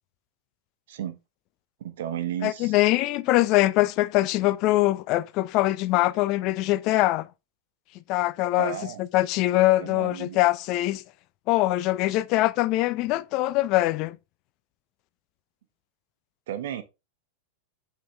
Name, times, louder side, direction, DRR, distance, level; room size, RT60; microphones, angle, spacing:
voice 1, 1.8-2.7 8.6-9.0 9.8-10.4 16.5-16.8, right 10 dB, 65° right, 0.9 m, -33 dB
voice 2, 2.4-7.3 8.1-8.7 9.1-11.0 11.5-14.2, left 17 dB, 45° left, 0.4 m, -23 dB
7.5 x 3.8 x 3.3 m
figure-of-eight pair, 95°, 0 cm